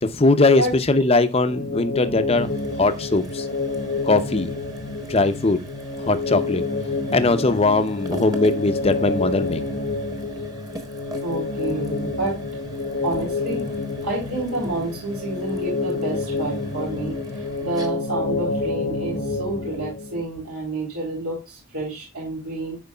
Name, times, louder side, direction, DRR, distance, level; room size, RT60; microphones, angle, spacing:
voice 1, 0.0-2.5 2.8-3.5 4.0-4.5 5.1-5.6 6.1-6.6 7.1-9.6, left 2 dB, 25° left, 0.6 m, -20 dB
sound 1, 1.4-20.2, left 3 dB, 55° left, 0.9 m, -28 dB
sound 2, 2.2-19.9, right 1 dB, 15° right, 1.2 m, -42 dB
voice 2, 11.2-12.4 13.0-13.6 14.0-22.8, right 2 dB, 90° right, 3.2 m, -29 dB
10.5 x 4.6 x 2.3 m
head